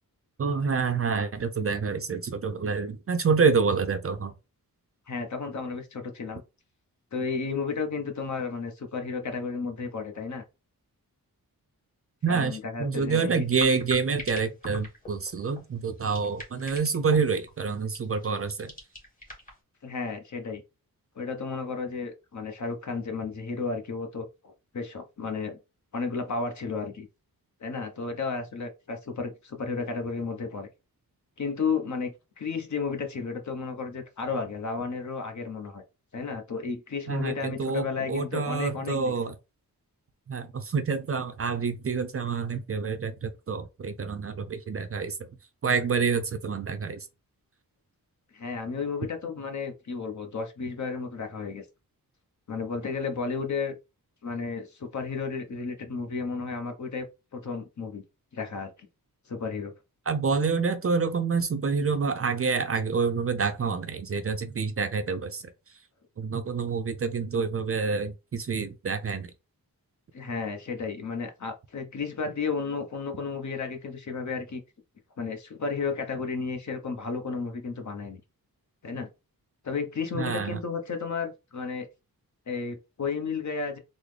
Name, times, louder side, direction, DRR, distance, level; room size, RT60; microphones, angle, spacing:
voice 1, 0.4-4.3 12.2-18.7 37.1-39.3 40.3-45.2 45.6-47.1 60.1-65.4 66.2-69.3 80.1-80.6, right 5 dB, 40° right, 0.4 m, -27 dB
voice 2, 5.1-6.4 7.1-10.4 12.3-13.4 19.8-20.6 21.2-25.6 25.9-27.1 27.6-30.7 31.4-35.8 36.1-39.1 48.3-51.7 52.5-53.7 54.2-57.0 57.3-58.0 58.3-58.7 59.3-59.7 70.1-74.6 75.2-78.2 78.8-79.1 79.6-81.9 82.5-83.8, left 4 dB, 50° left, 0.8 m, -33 dB
sound 1, 13.4-19.6, left 1 dB, 20° left, 1.5 m, -44 dB
3.7 x 2.0 x 3.2 m
wide cardioid pair, 80°, 37 cm